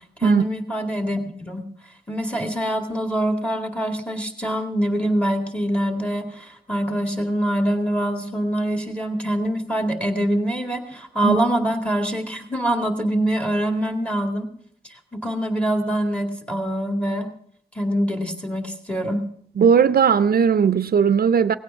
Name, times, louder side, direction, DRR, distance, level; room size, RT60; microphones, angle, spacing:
voice 1, 0.2-1.7 2.1-14.5 14.9-17.3 17.8-19.2, right 1 dB, 5° left, 2.1 m, -24 dB
voice 2, 19.6-21.5, right 7 dB, 65° right, 0.5 m, -17 dB
18.0 x 16.0 x 3.5 m
wide cardioid pair, 125°, 17 cm